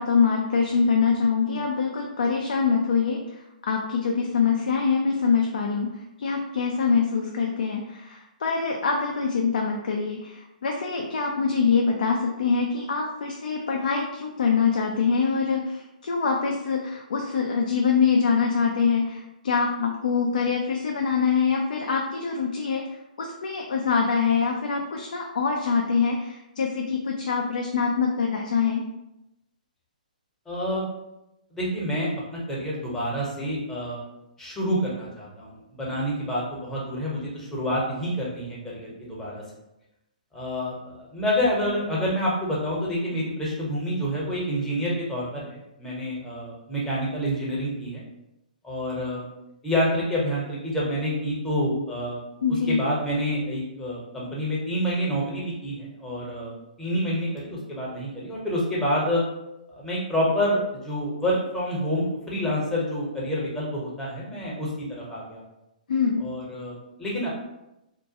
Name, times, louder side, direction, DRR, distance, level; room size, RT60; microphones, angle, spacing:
voice 1, 0.0-3.2 3.7-5.9 6.2-22.8 23.2-28.8 52.4-52.8 65.9-66.2, left 5 dB, 70° left, 1 dB, 0.4 m, -24 dB
voice 2, 30.5-30.9 31.5-34.0 34.4-39.4 40.3-48.0 48.6-49.3 49.6-52.2 52.7-59.2 59.7-65.4 66.2-67.3, equal, 10° left, -5 dB, 0.8 m, -28 dB
2.4 x 2.1 x 2.7 m, 0.89 s
hypercardioid pair, 130°, 5 cm